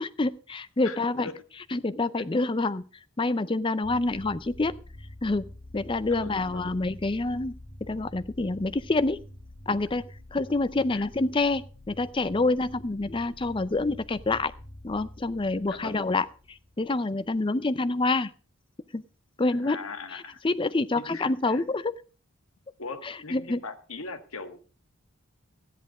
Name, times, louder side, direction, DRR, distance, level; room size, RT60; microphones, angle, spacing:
voice 1, 0.0-1.3 1.7-2.8 3.2-4.7 5.2-5.4 5.7-9.2 9.7-14.5 14.8-18.3 18.9-19.0 19.4-19.8 20.1-22.0 23.0-23.6, left 2 dB, 25° left, 0.5 m, -27 dB
voice 2, 0.8-1.3 6.1-6.7 10.9-11.0 15.7-16.0 19.6-20.4 20.9-21.6 22.8-24.7, left 4 dB, 80° left, 1.5 m, -40 dB
sound 1, 3.8-17.3, left 1 dB, 55° left, 2.6 m, -47 dB
13.5 x 10.5 x 4.9 m
head